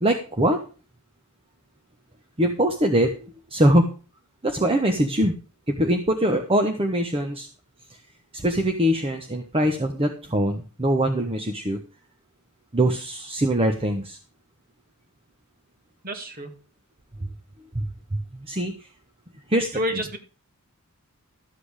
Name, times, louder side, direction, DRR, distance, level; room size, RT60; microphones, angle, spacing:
voice 1, 0.0-0.6 2.4-3.9 4.4-5.4 5.7-7.5 8.3-11.8 12.7-14.2 17.7-17.8 18.1-18.9 19.5-19.8, right 1 dB, 25° right, 4 dB, 1.2 m, -23 dB
voice 2, 16.0-16.5 19.7-20.2, equal, 40° right, 5 dB, 2.3 m, -28 dB
13.5 x 7.9 x 4.9 m, 0.35 s
head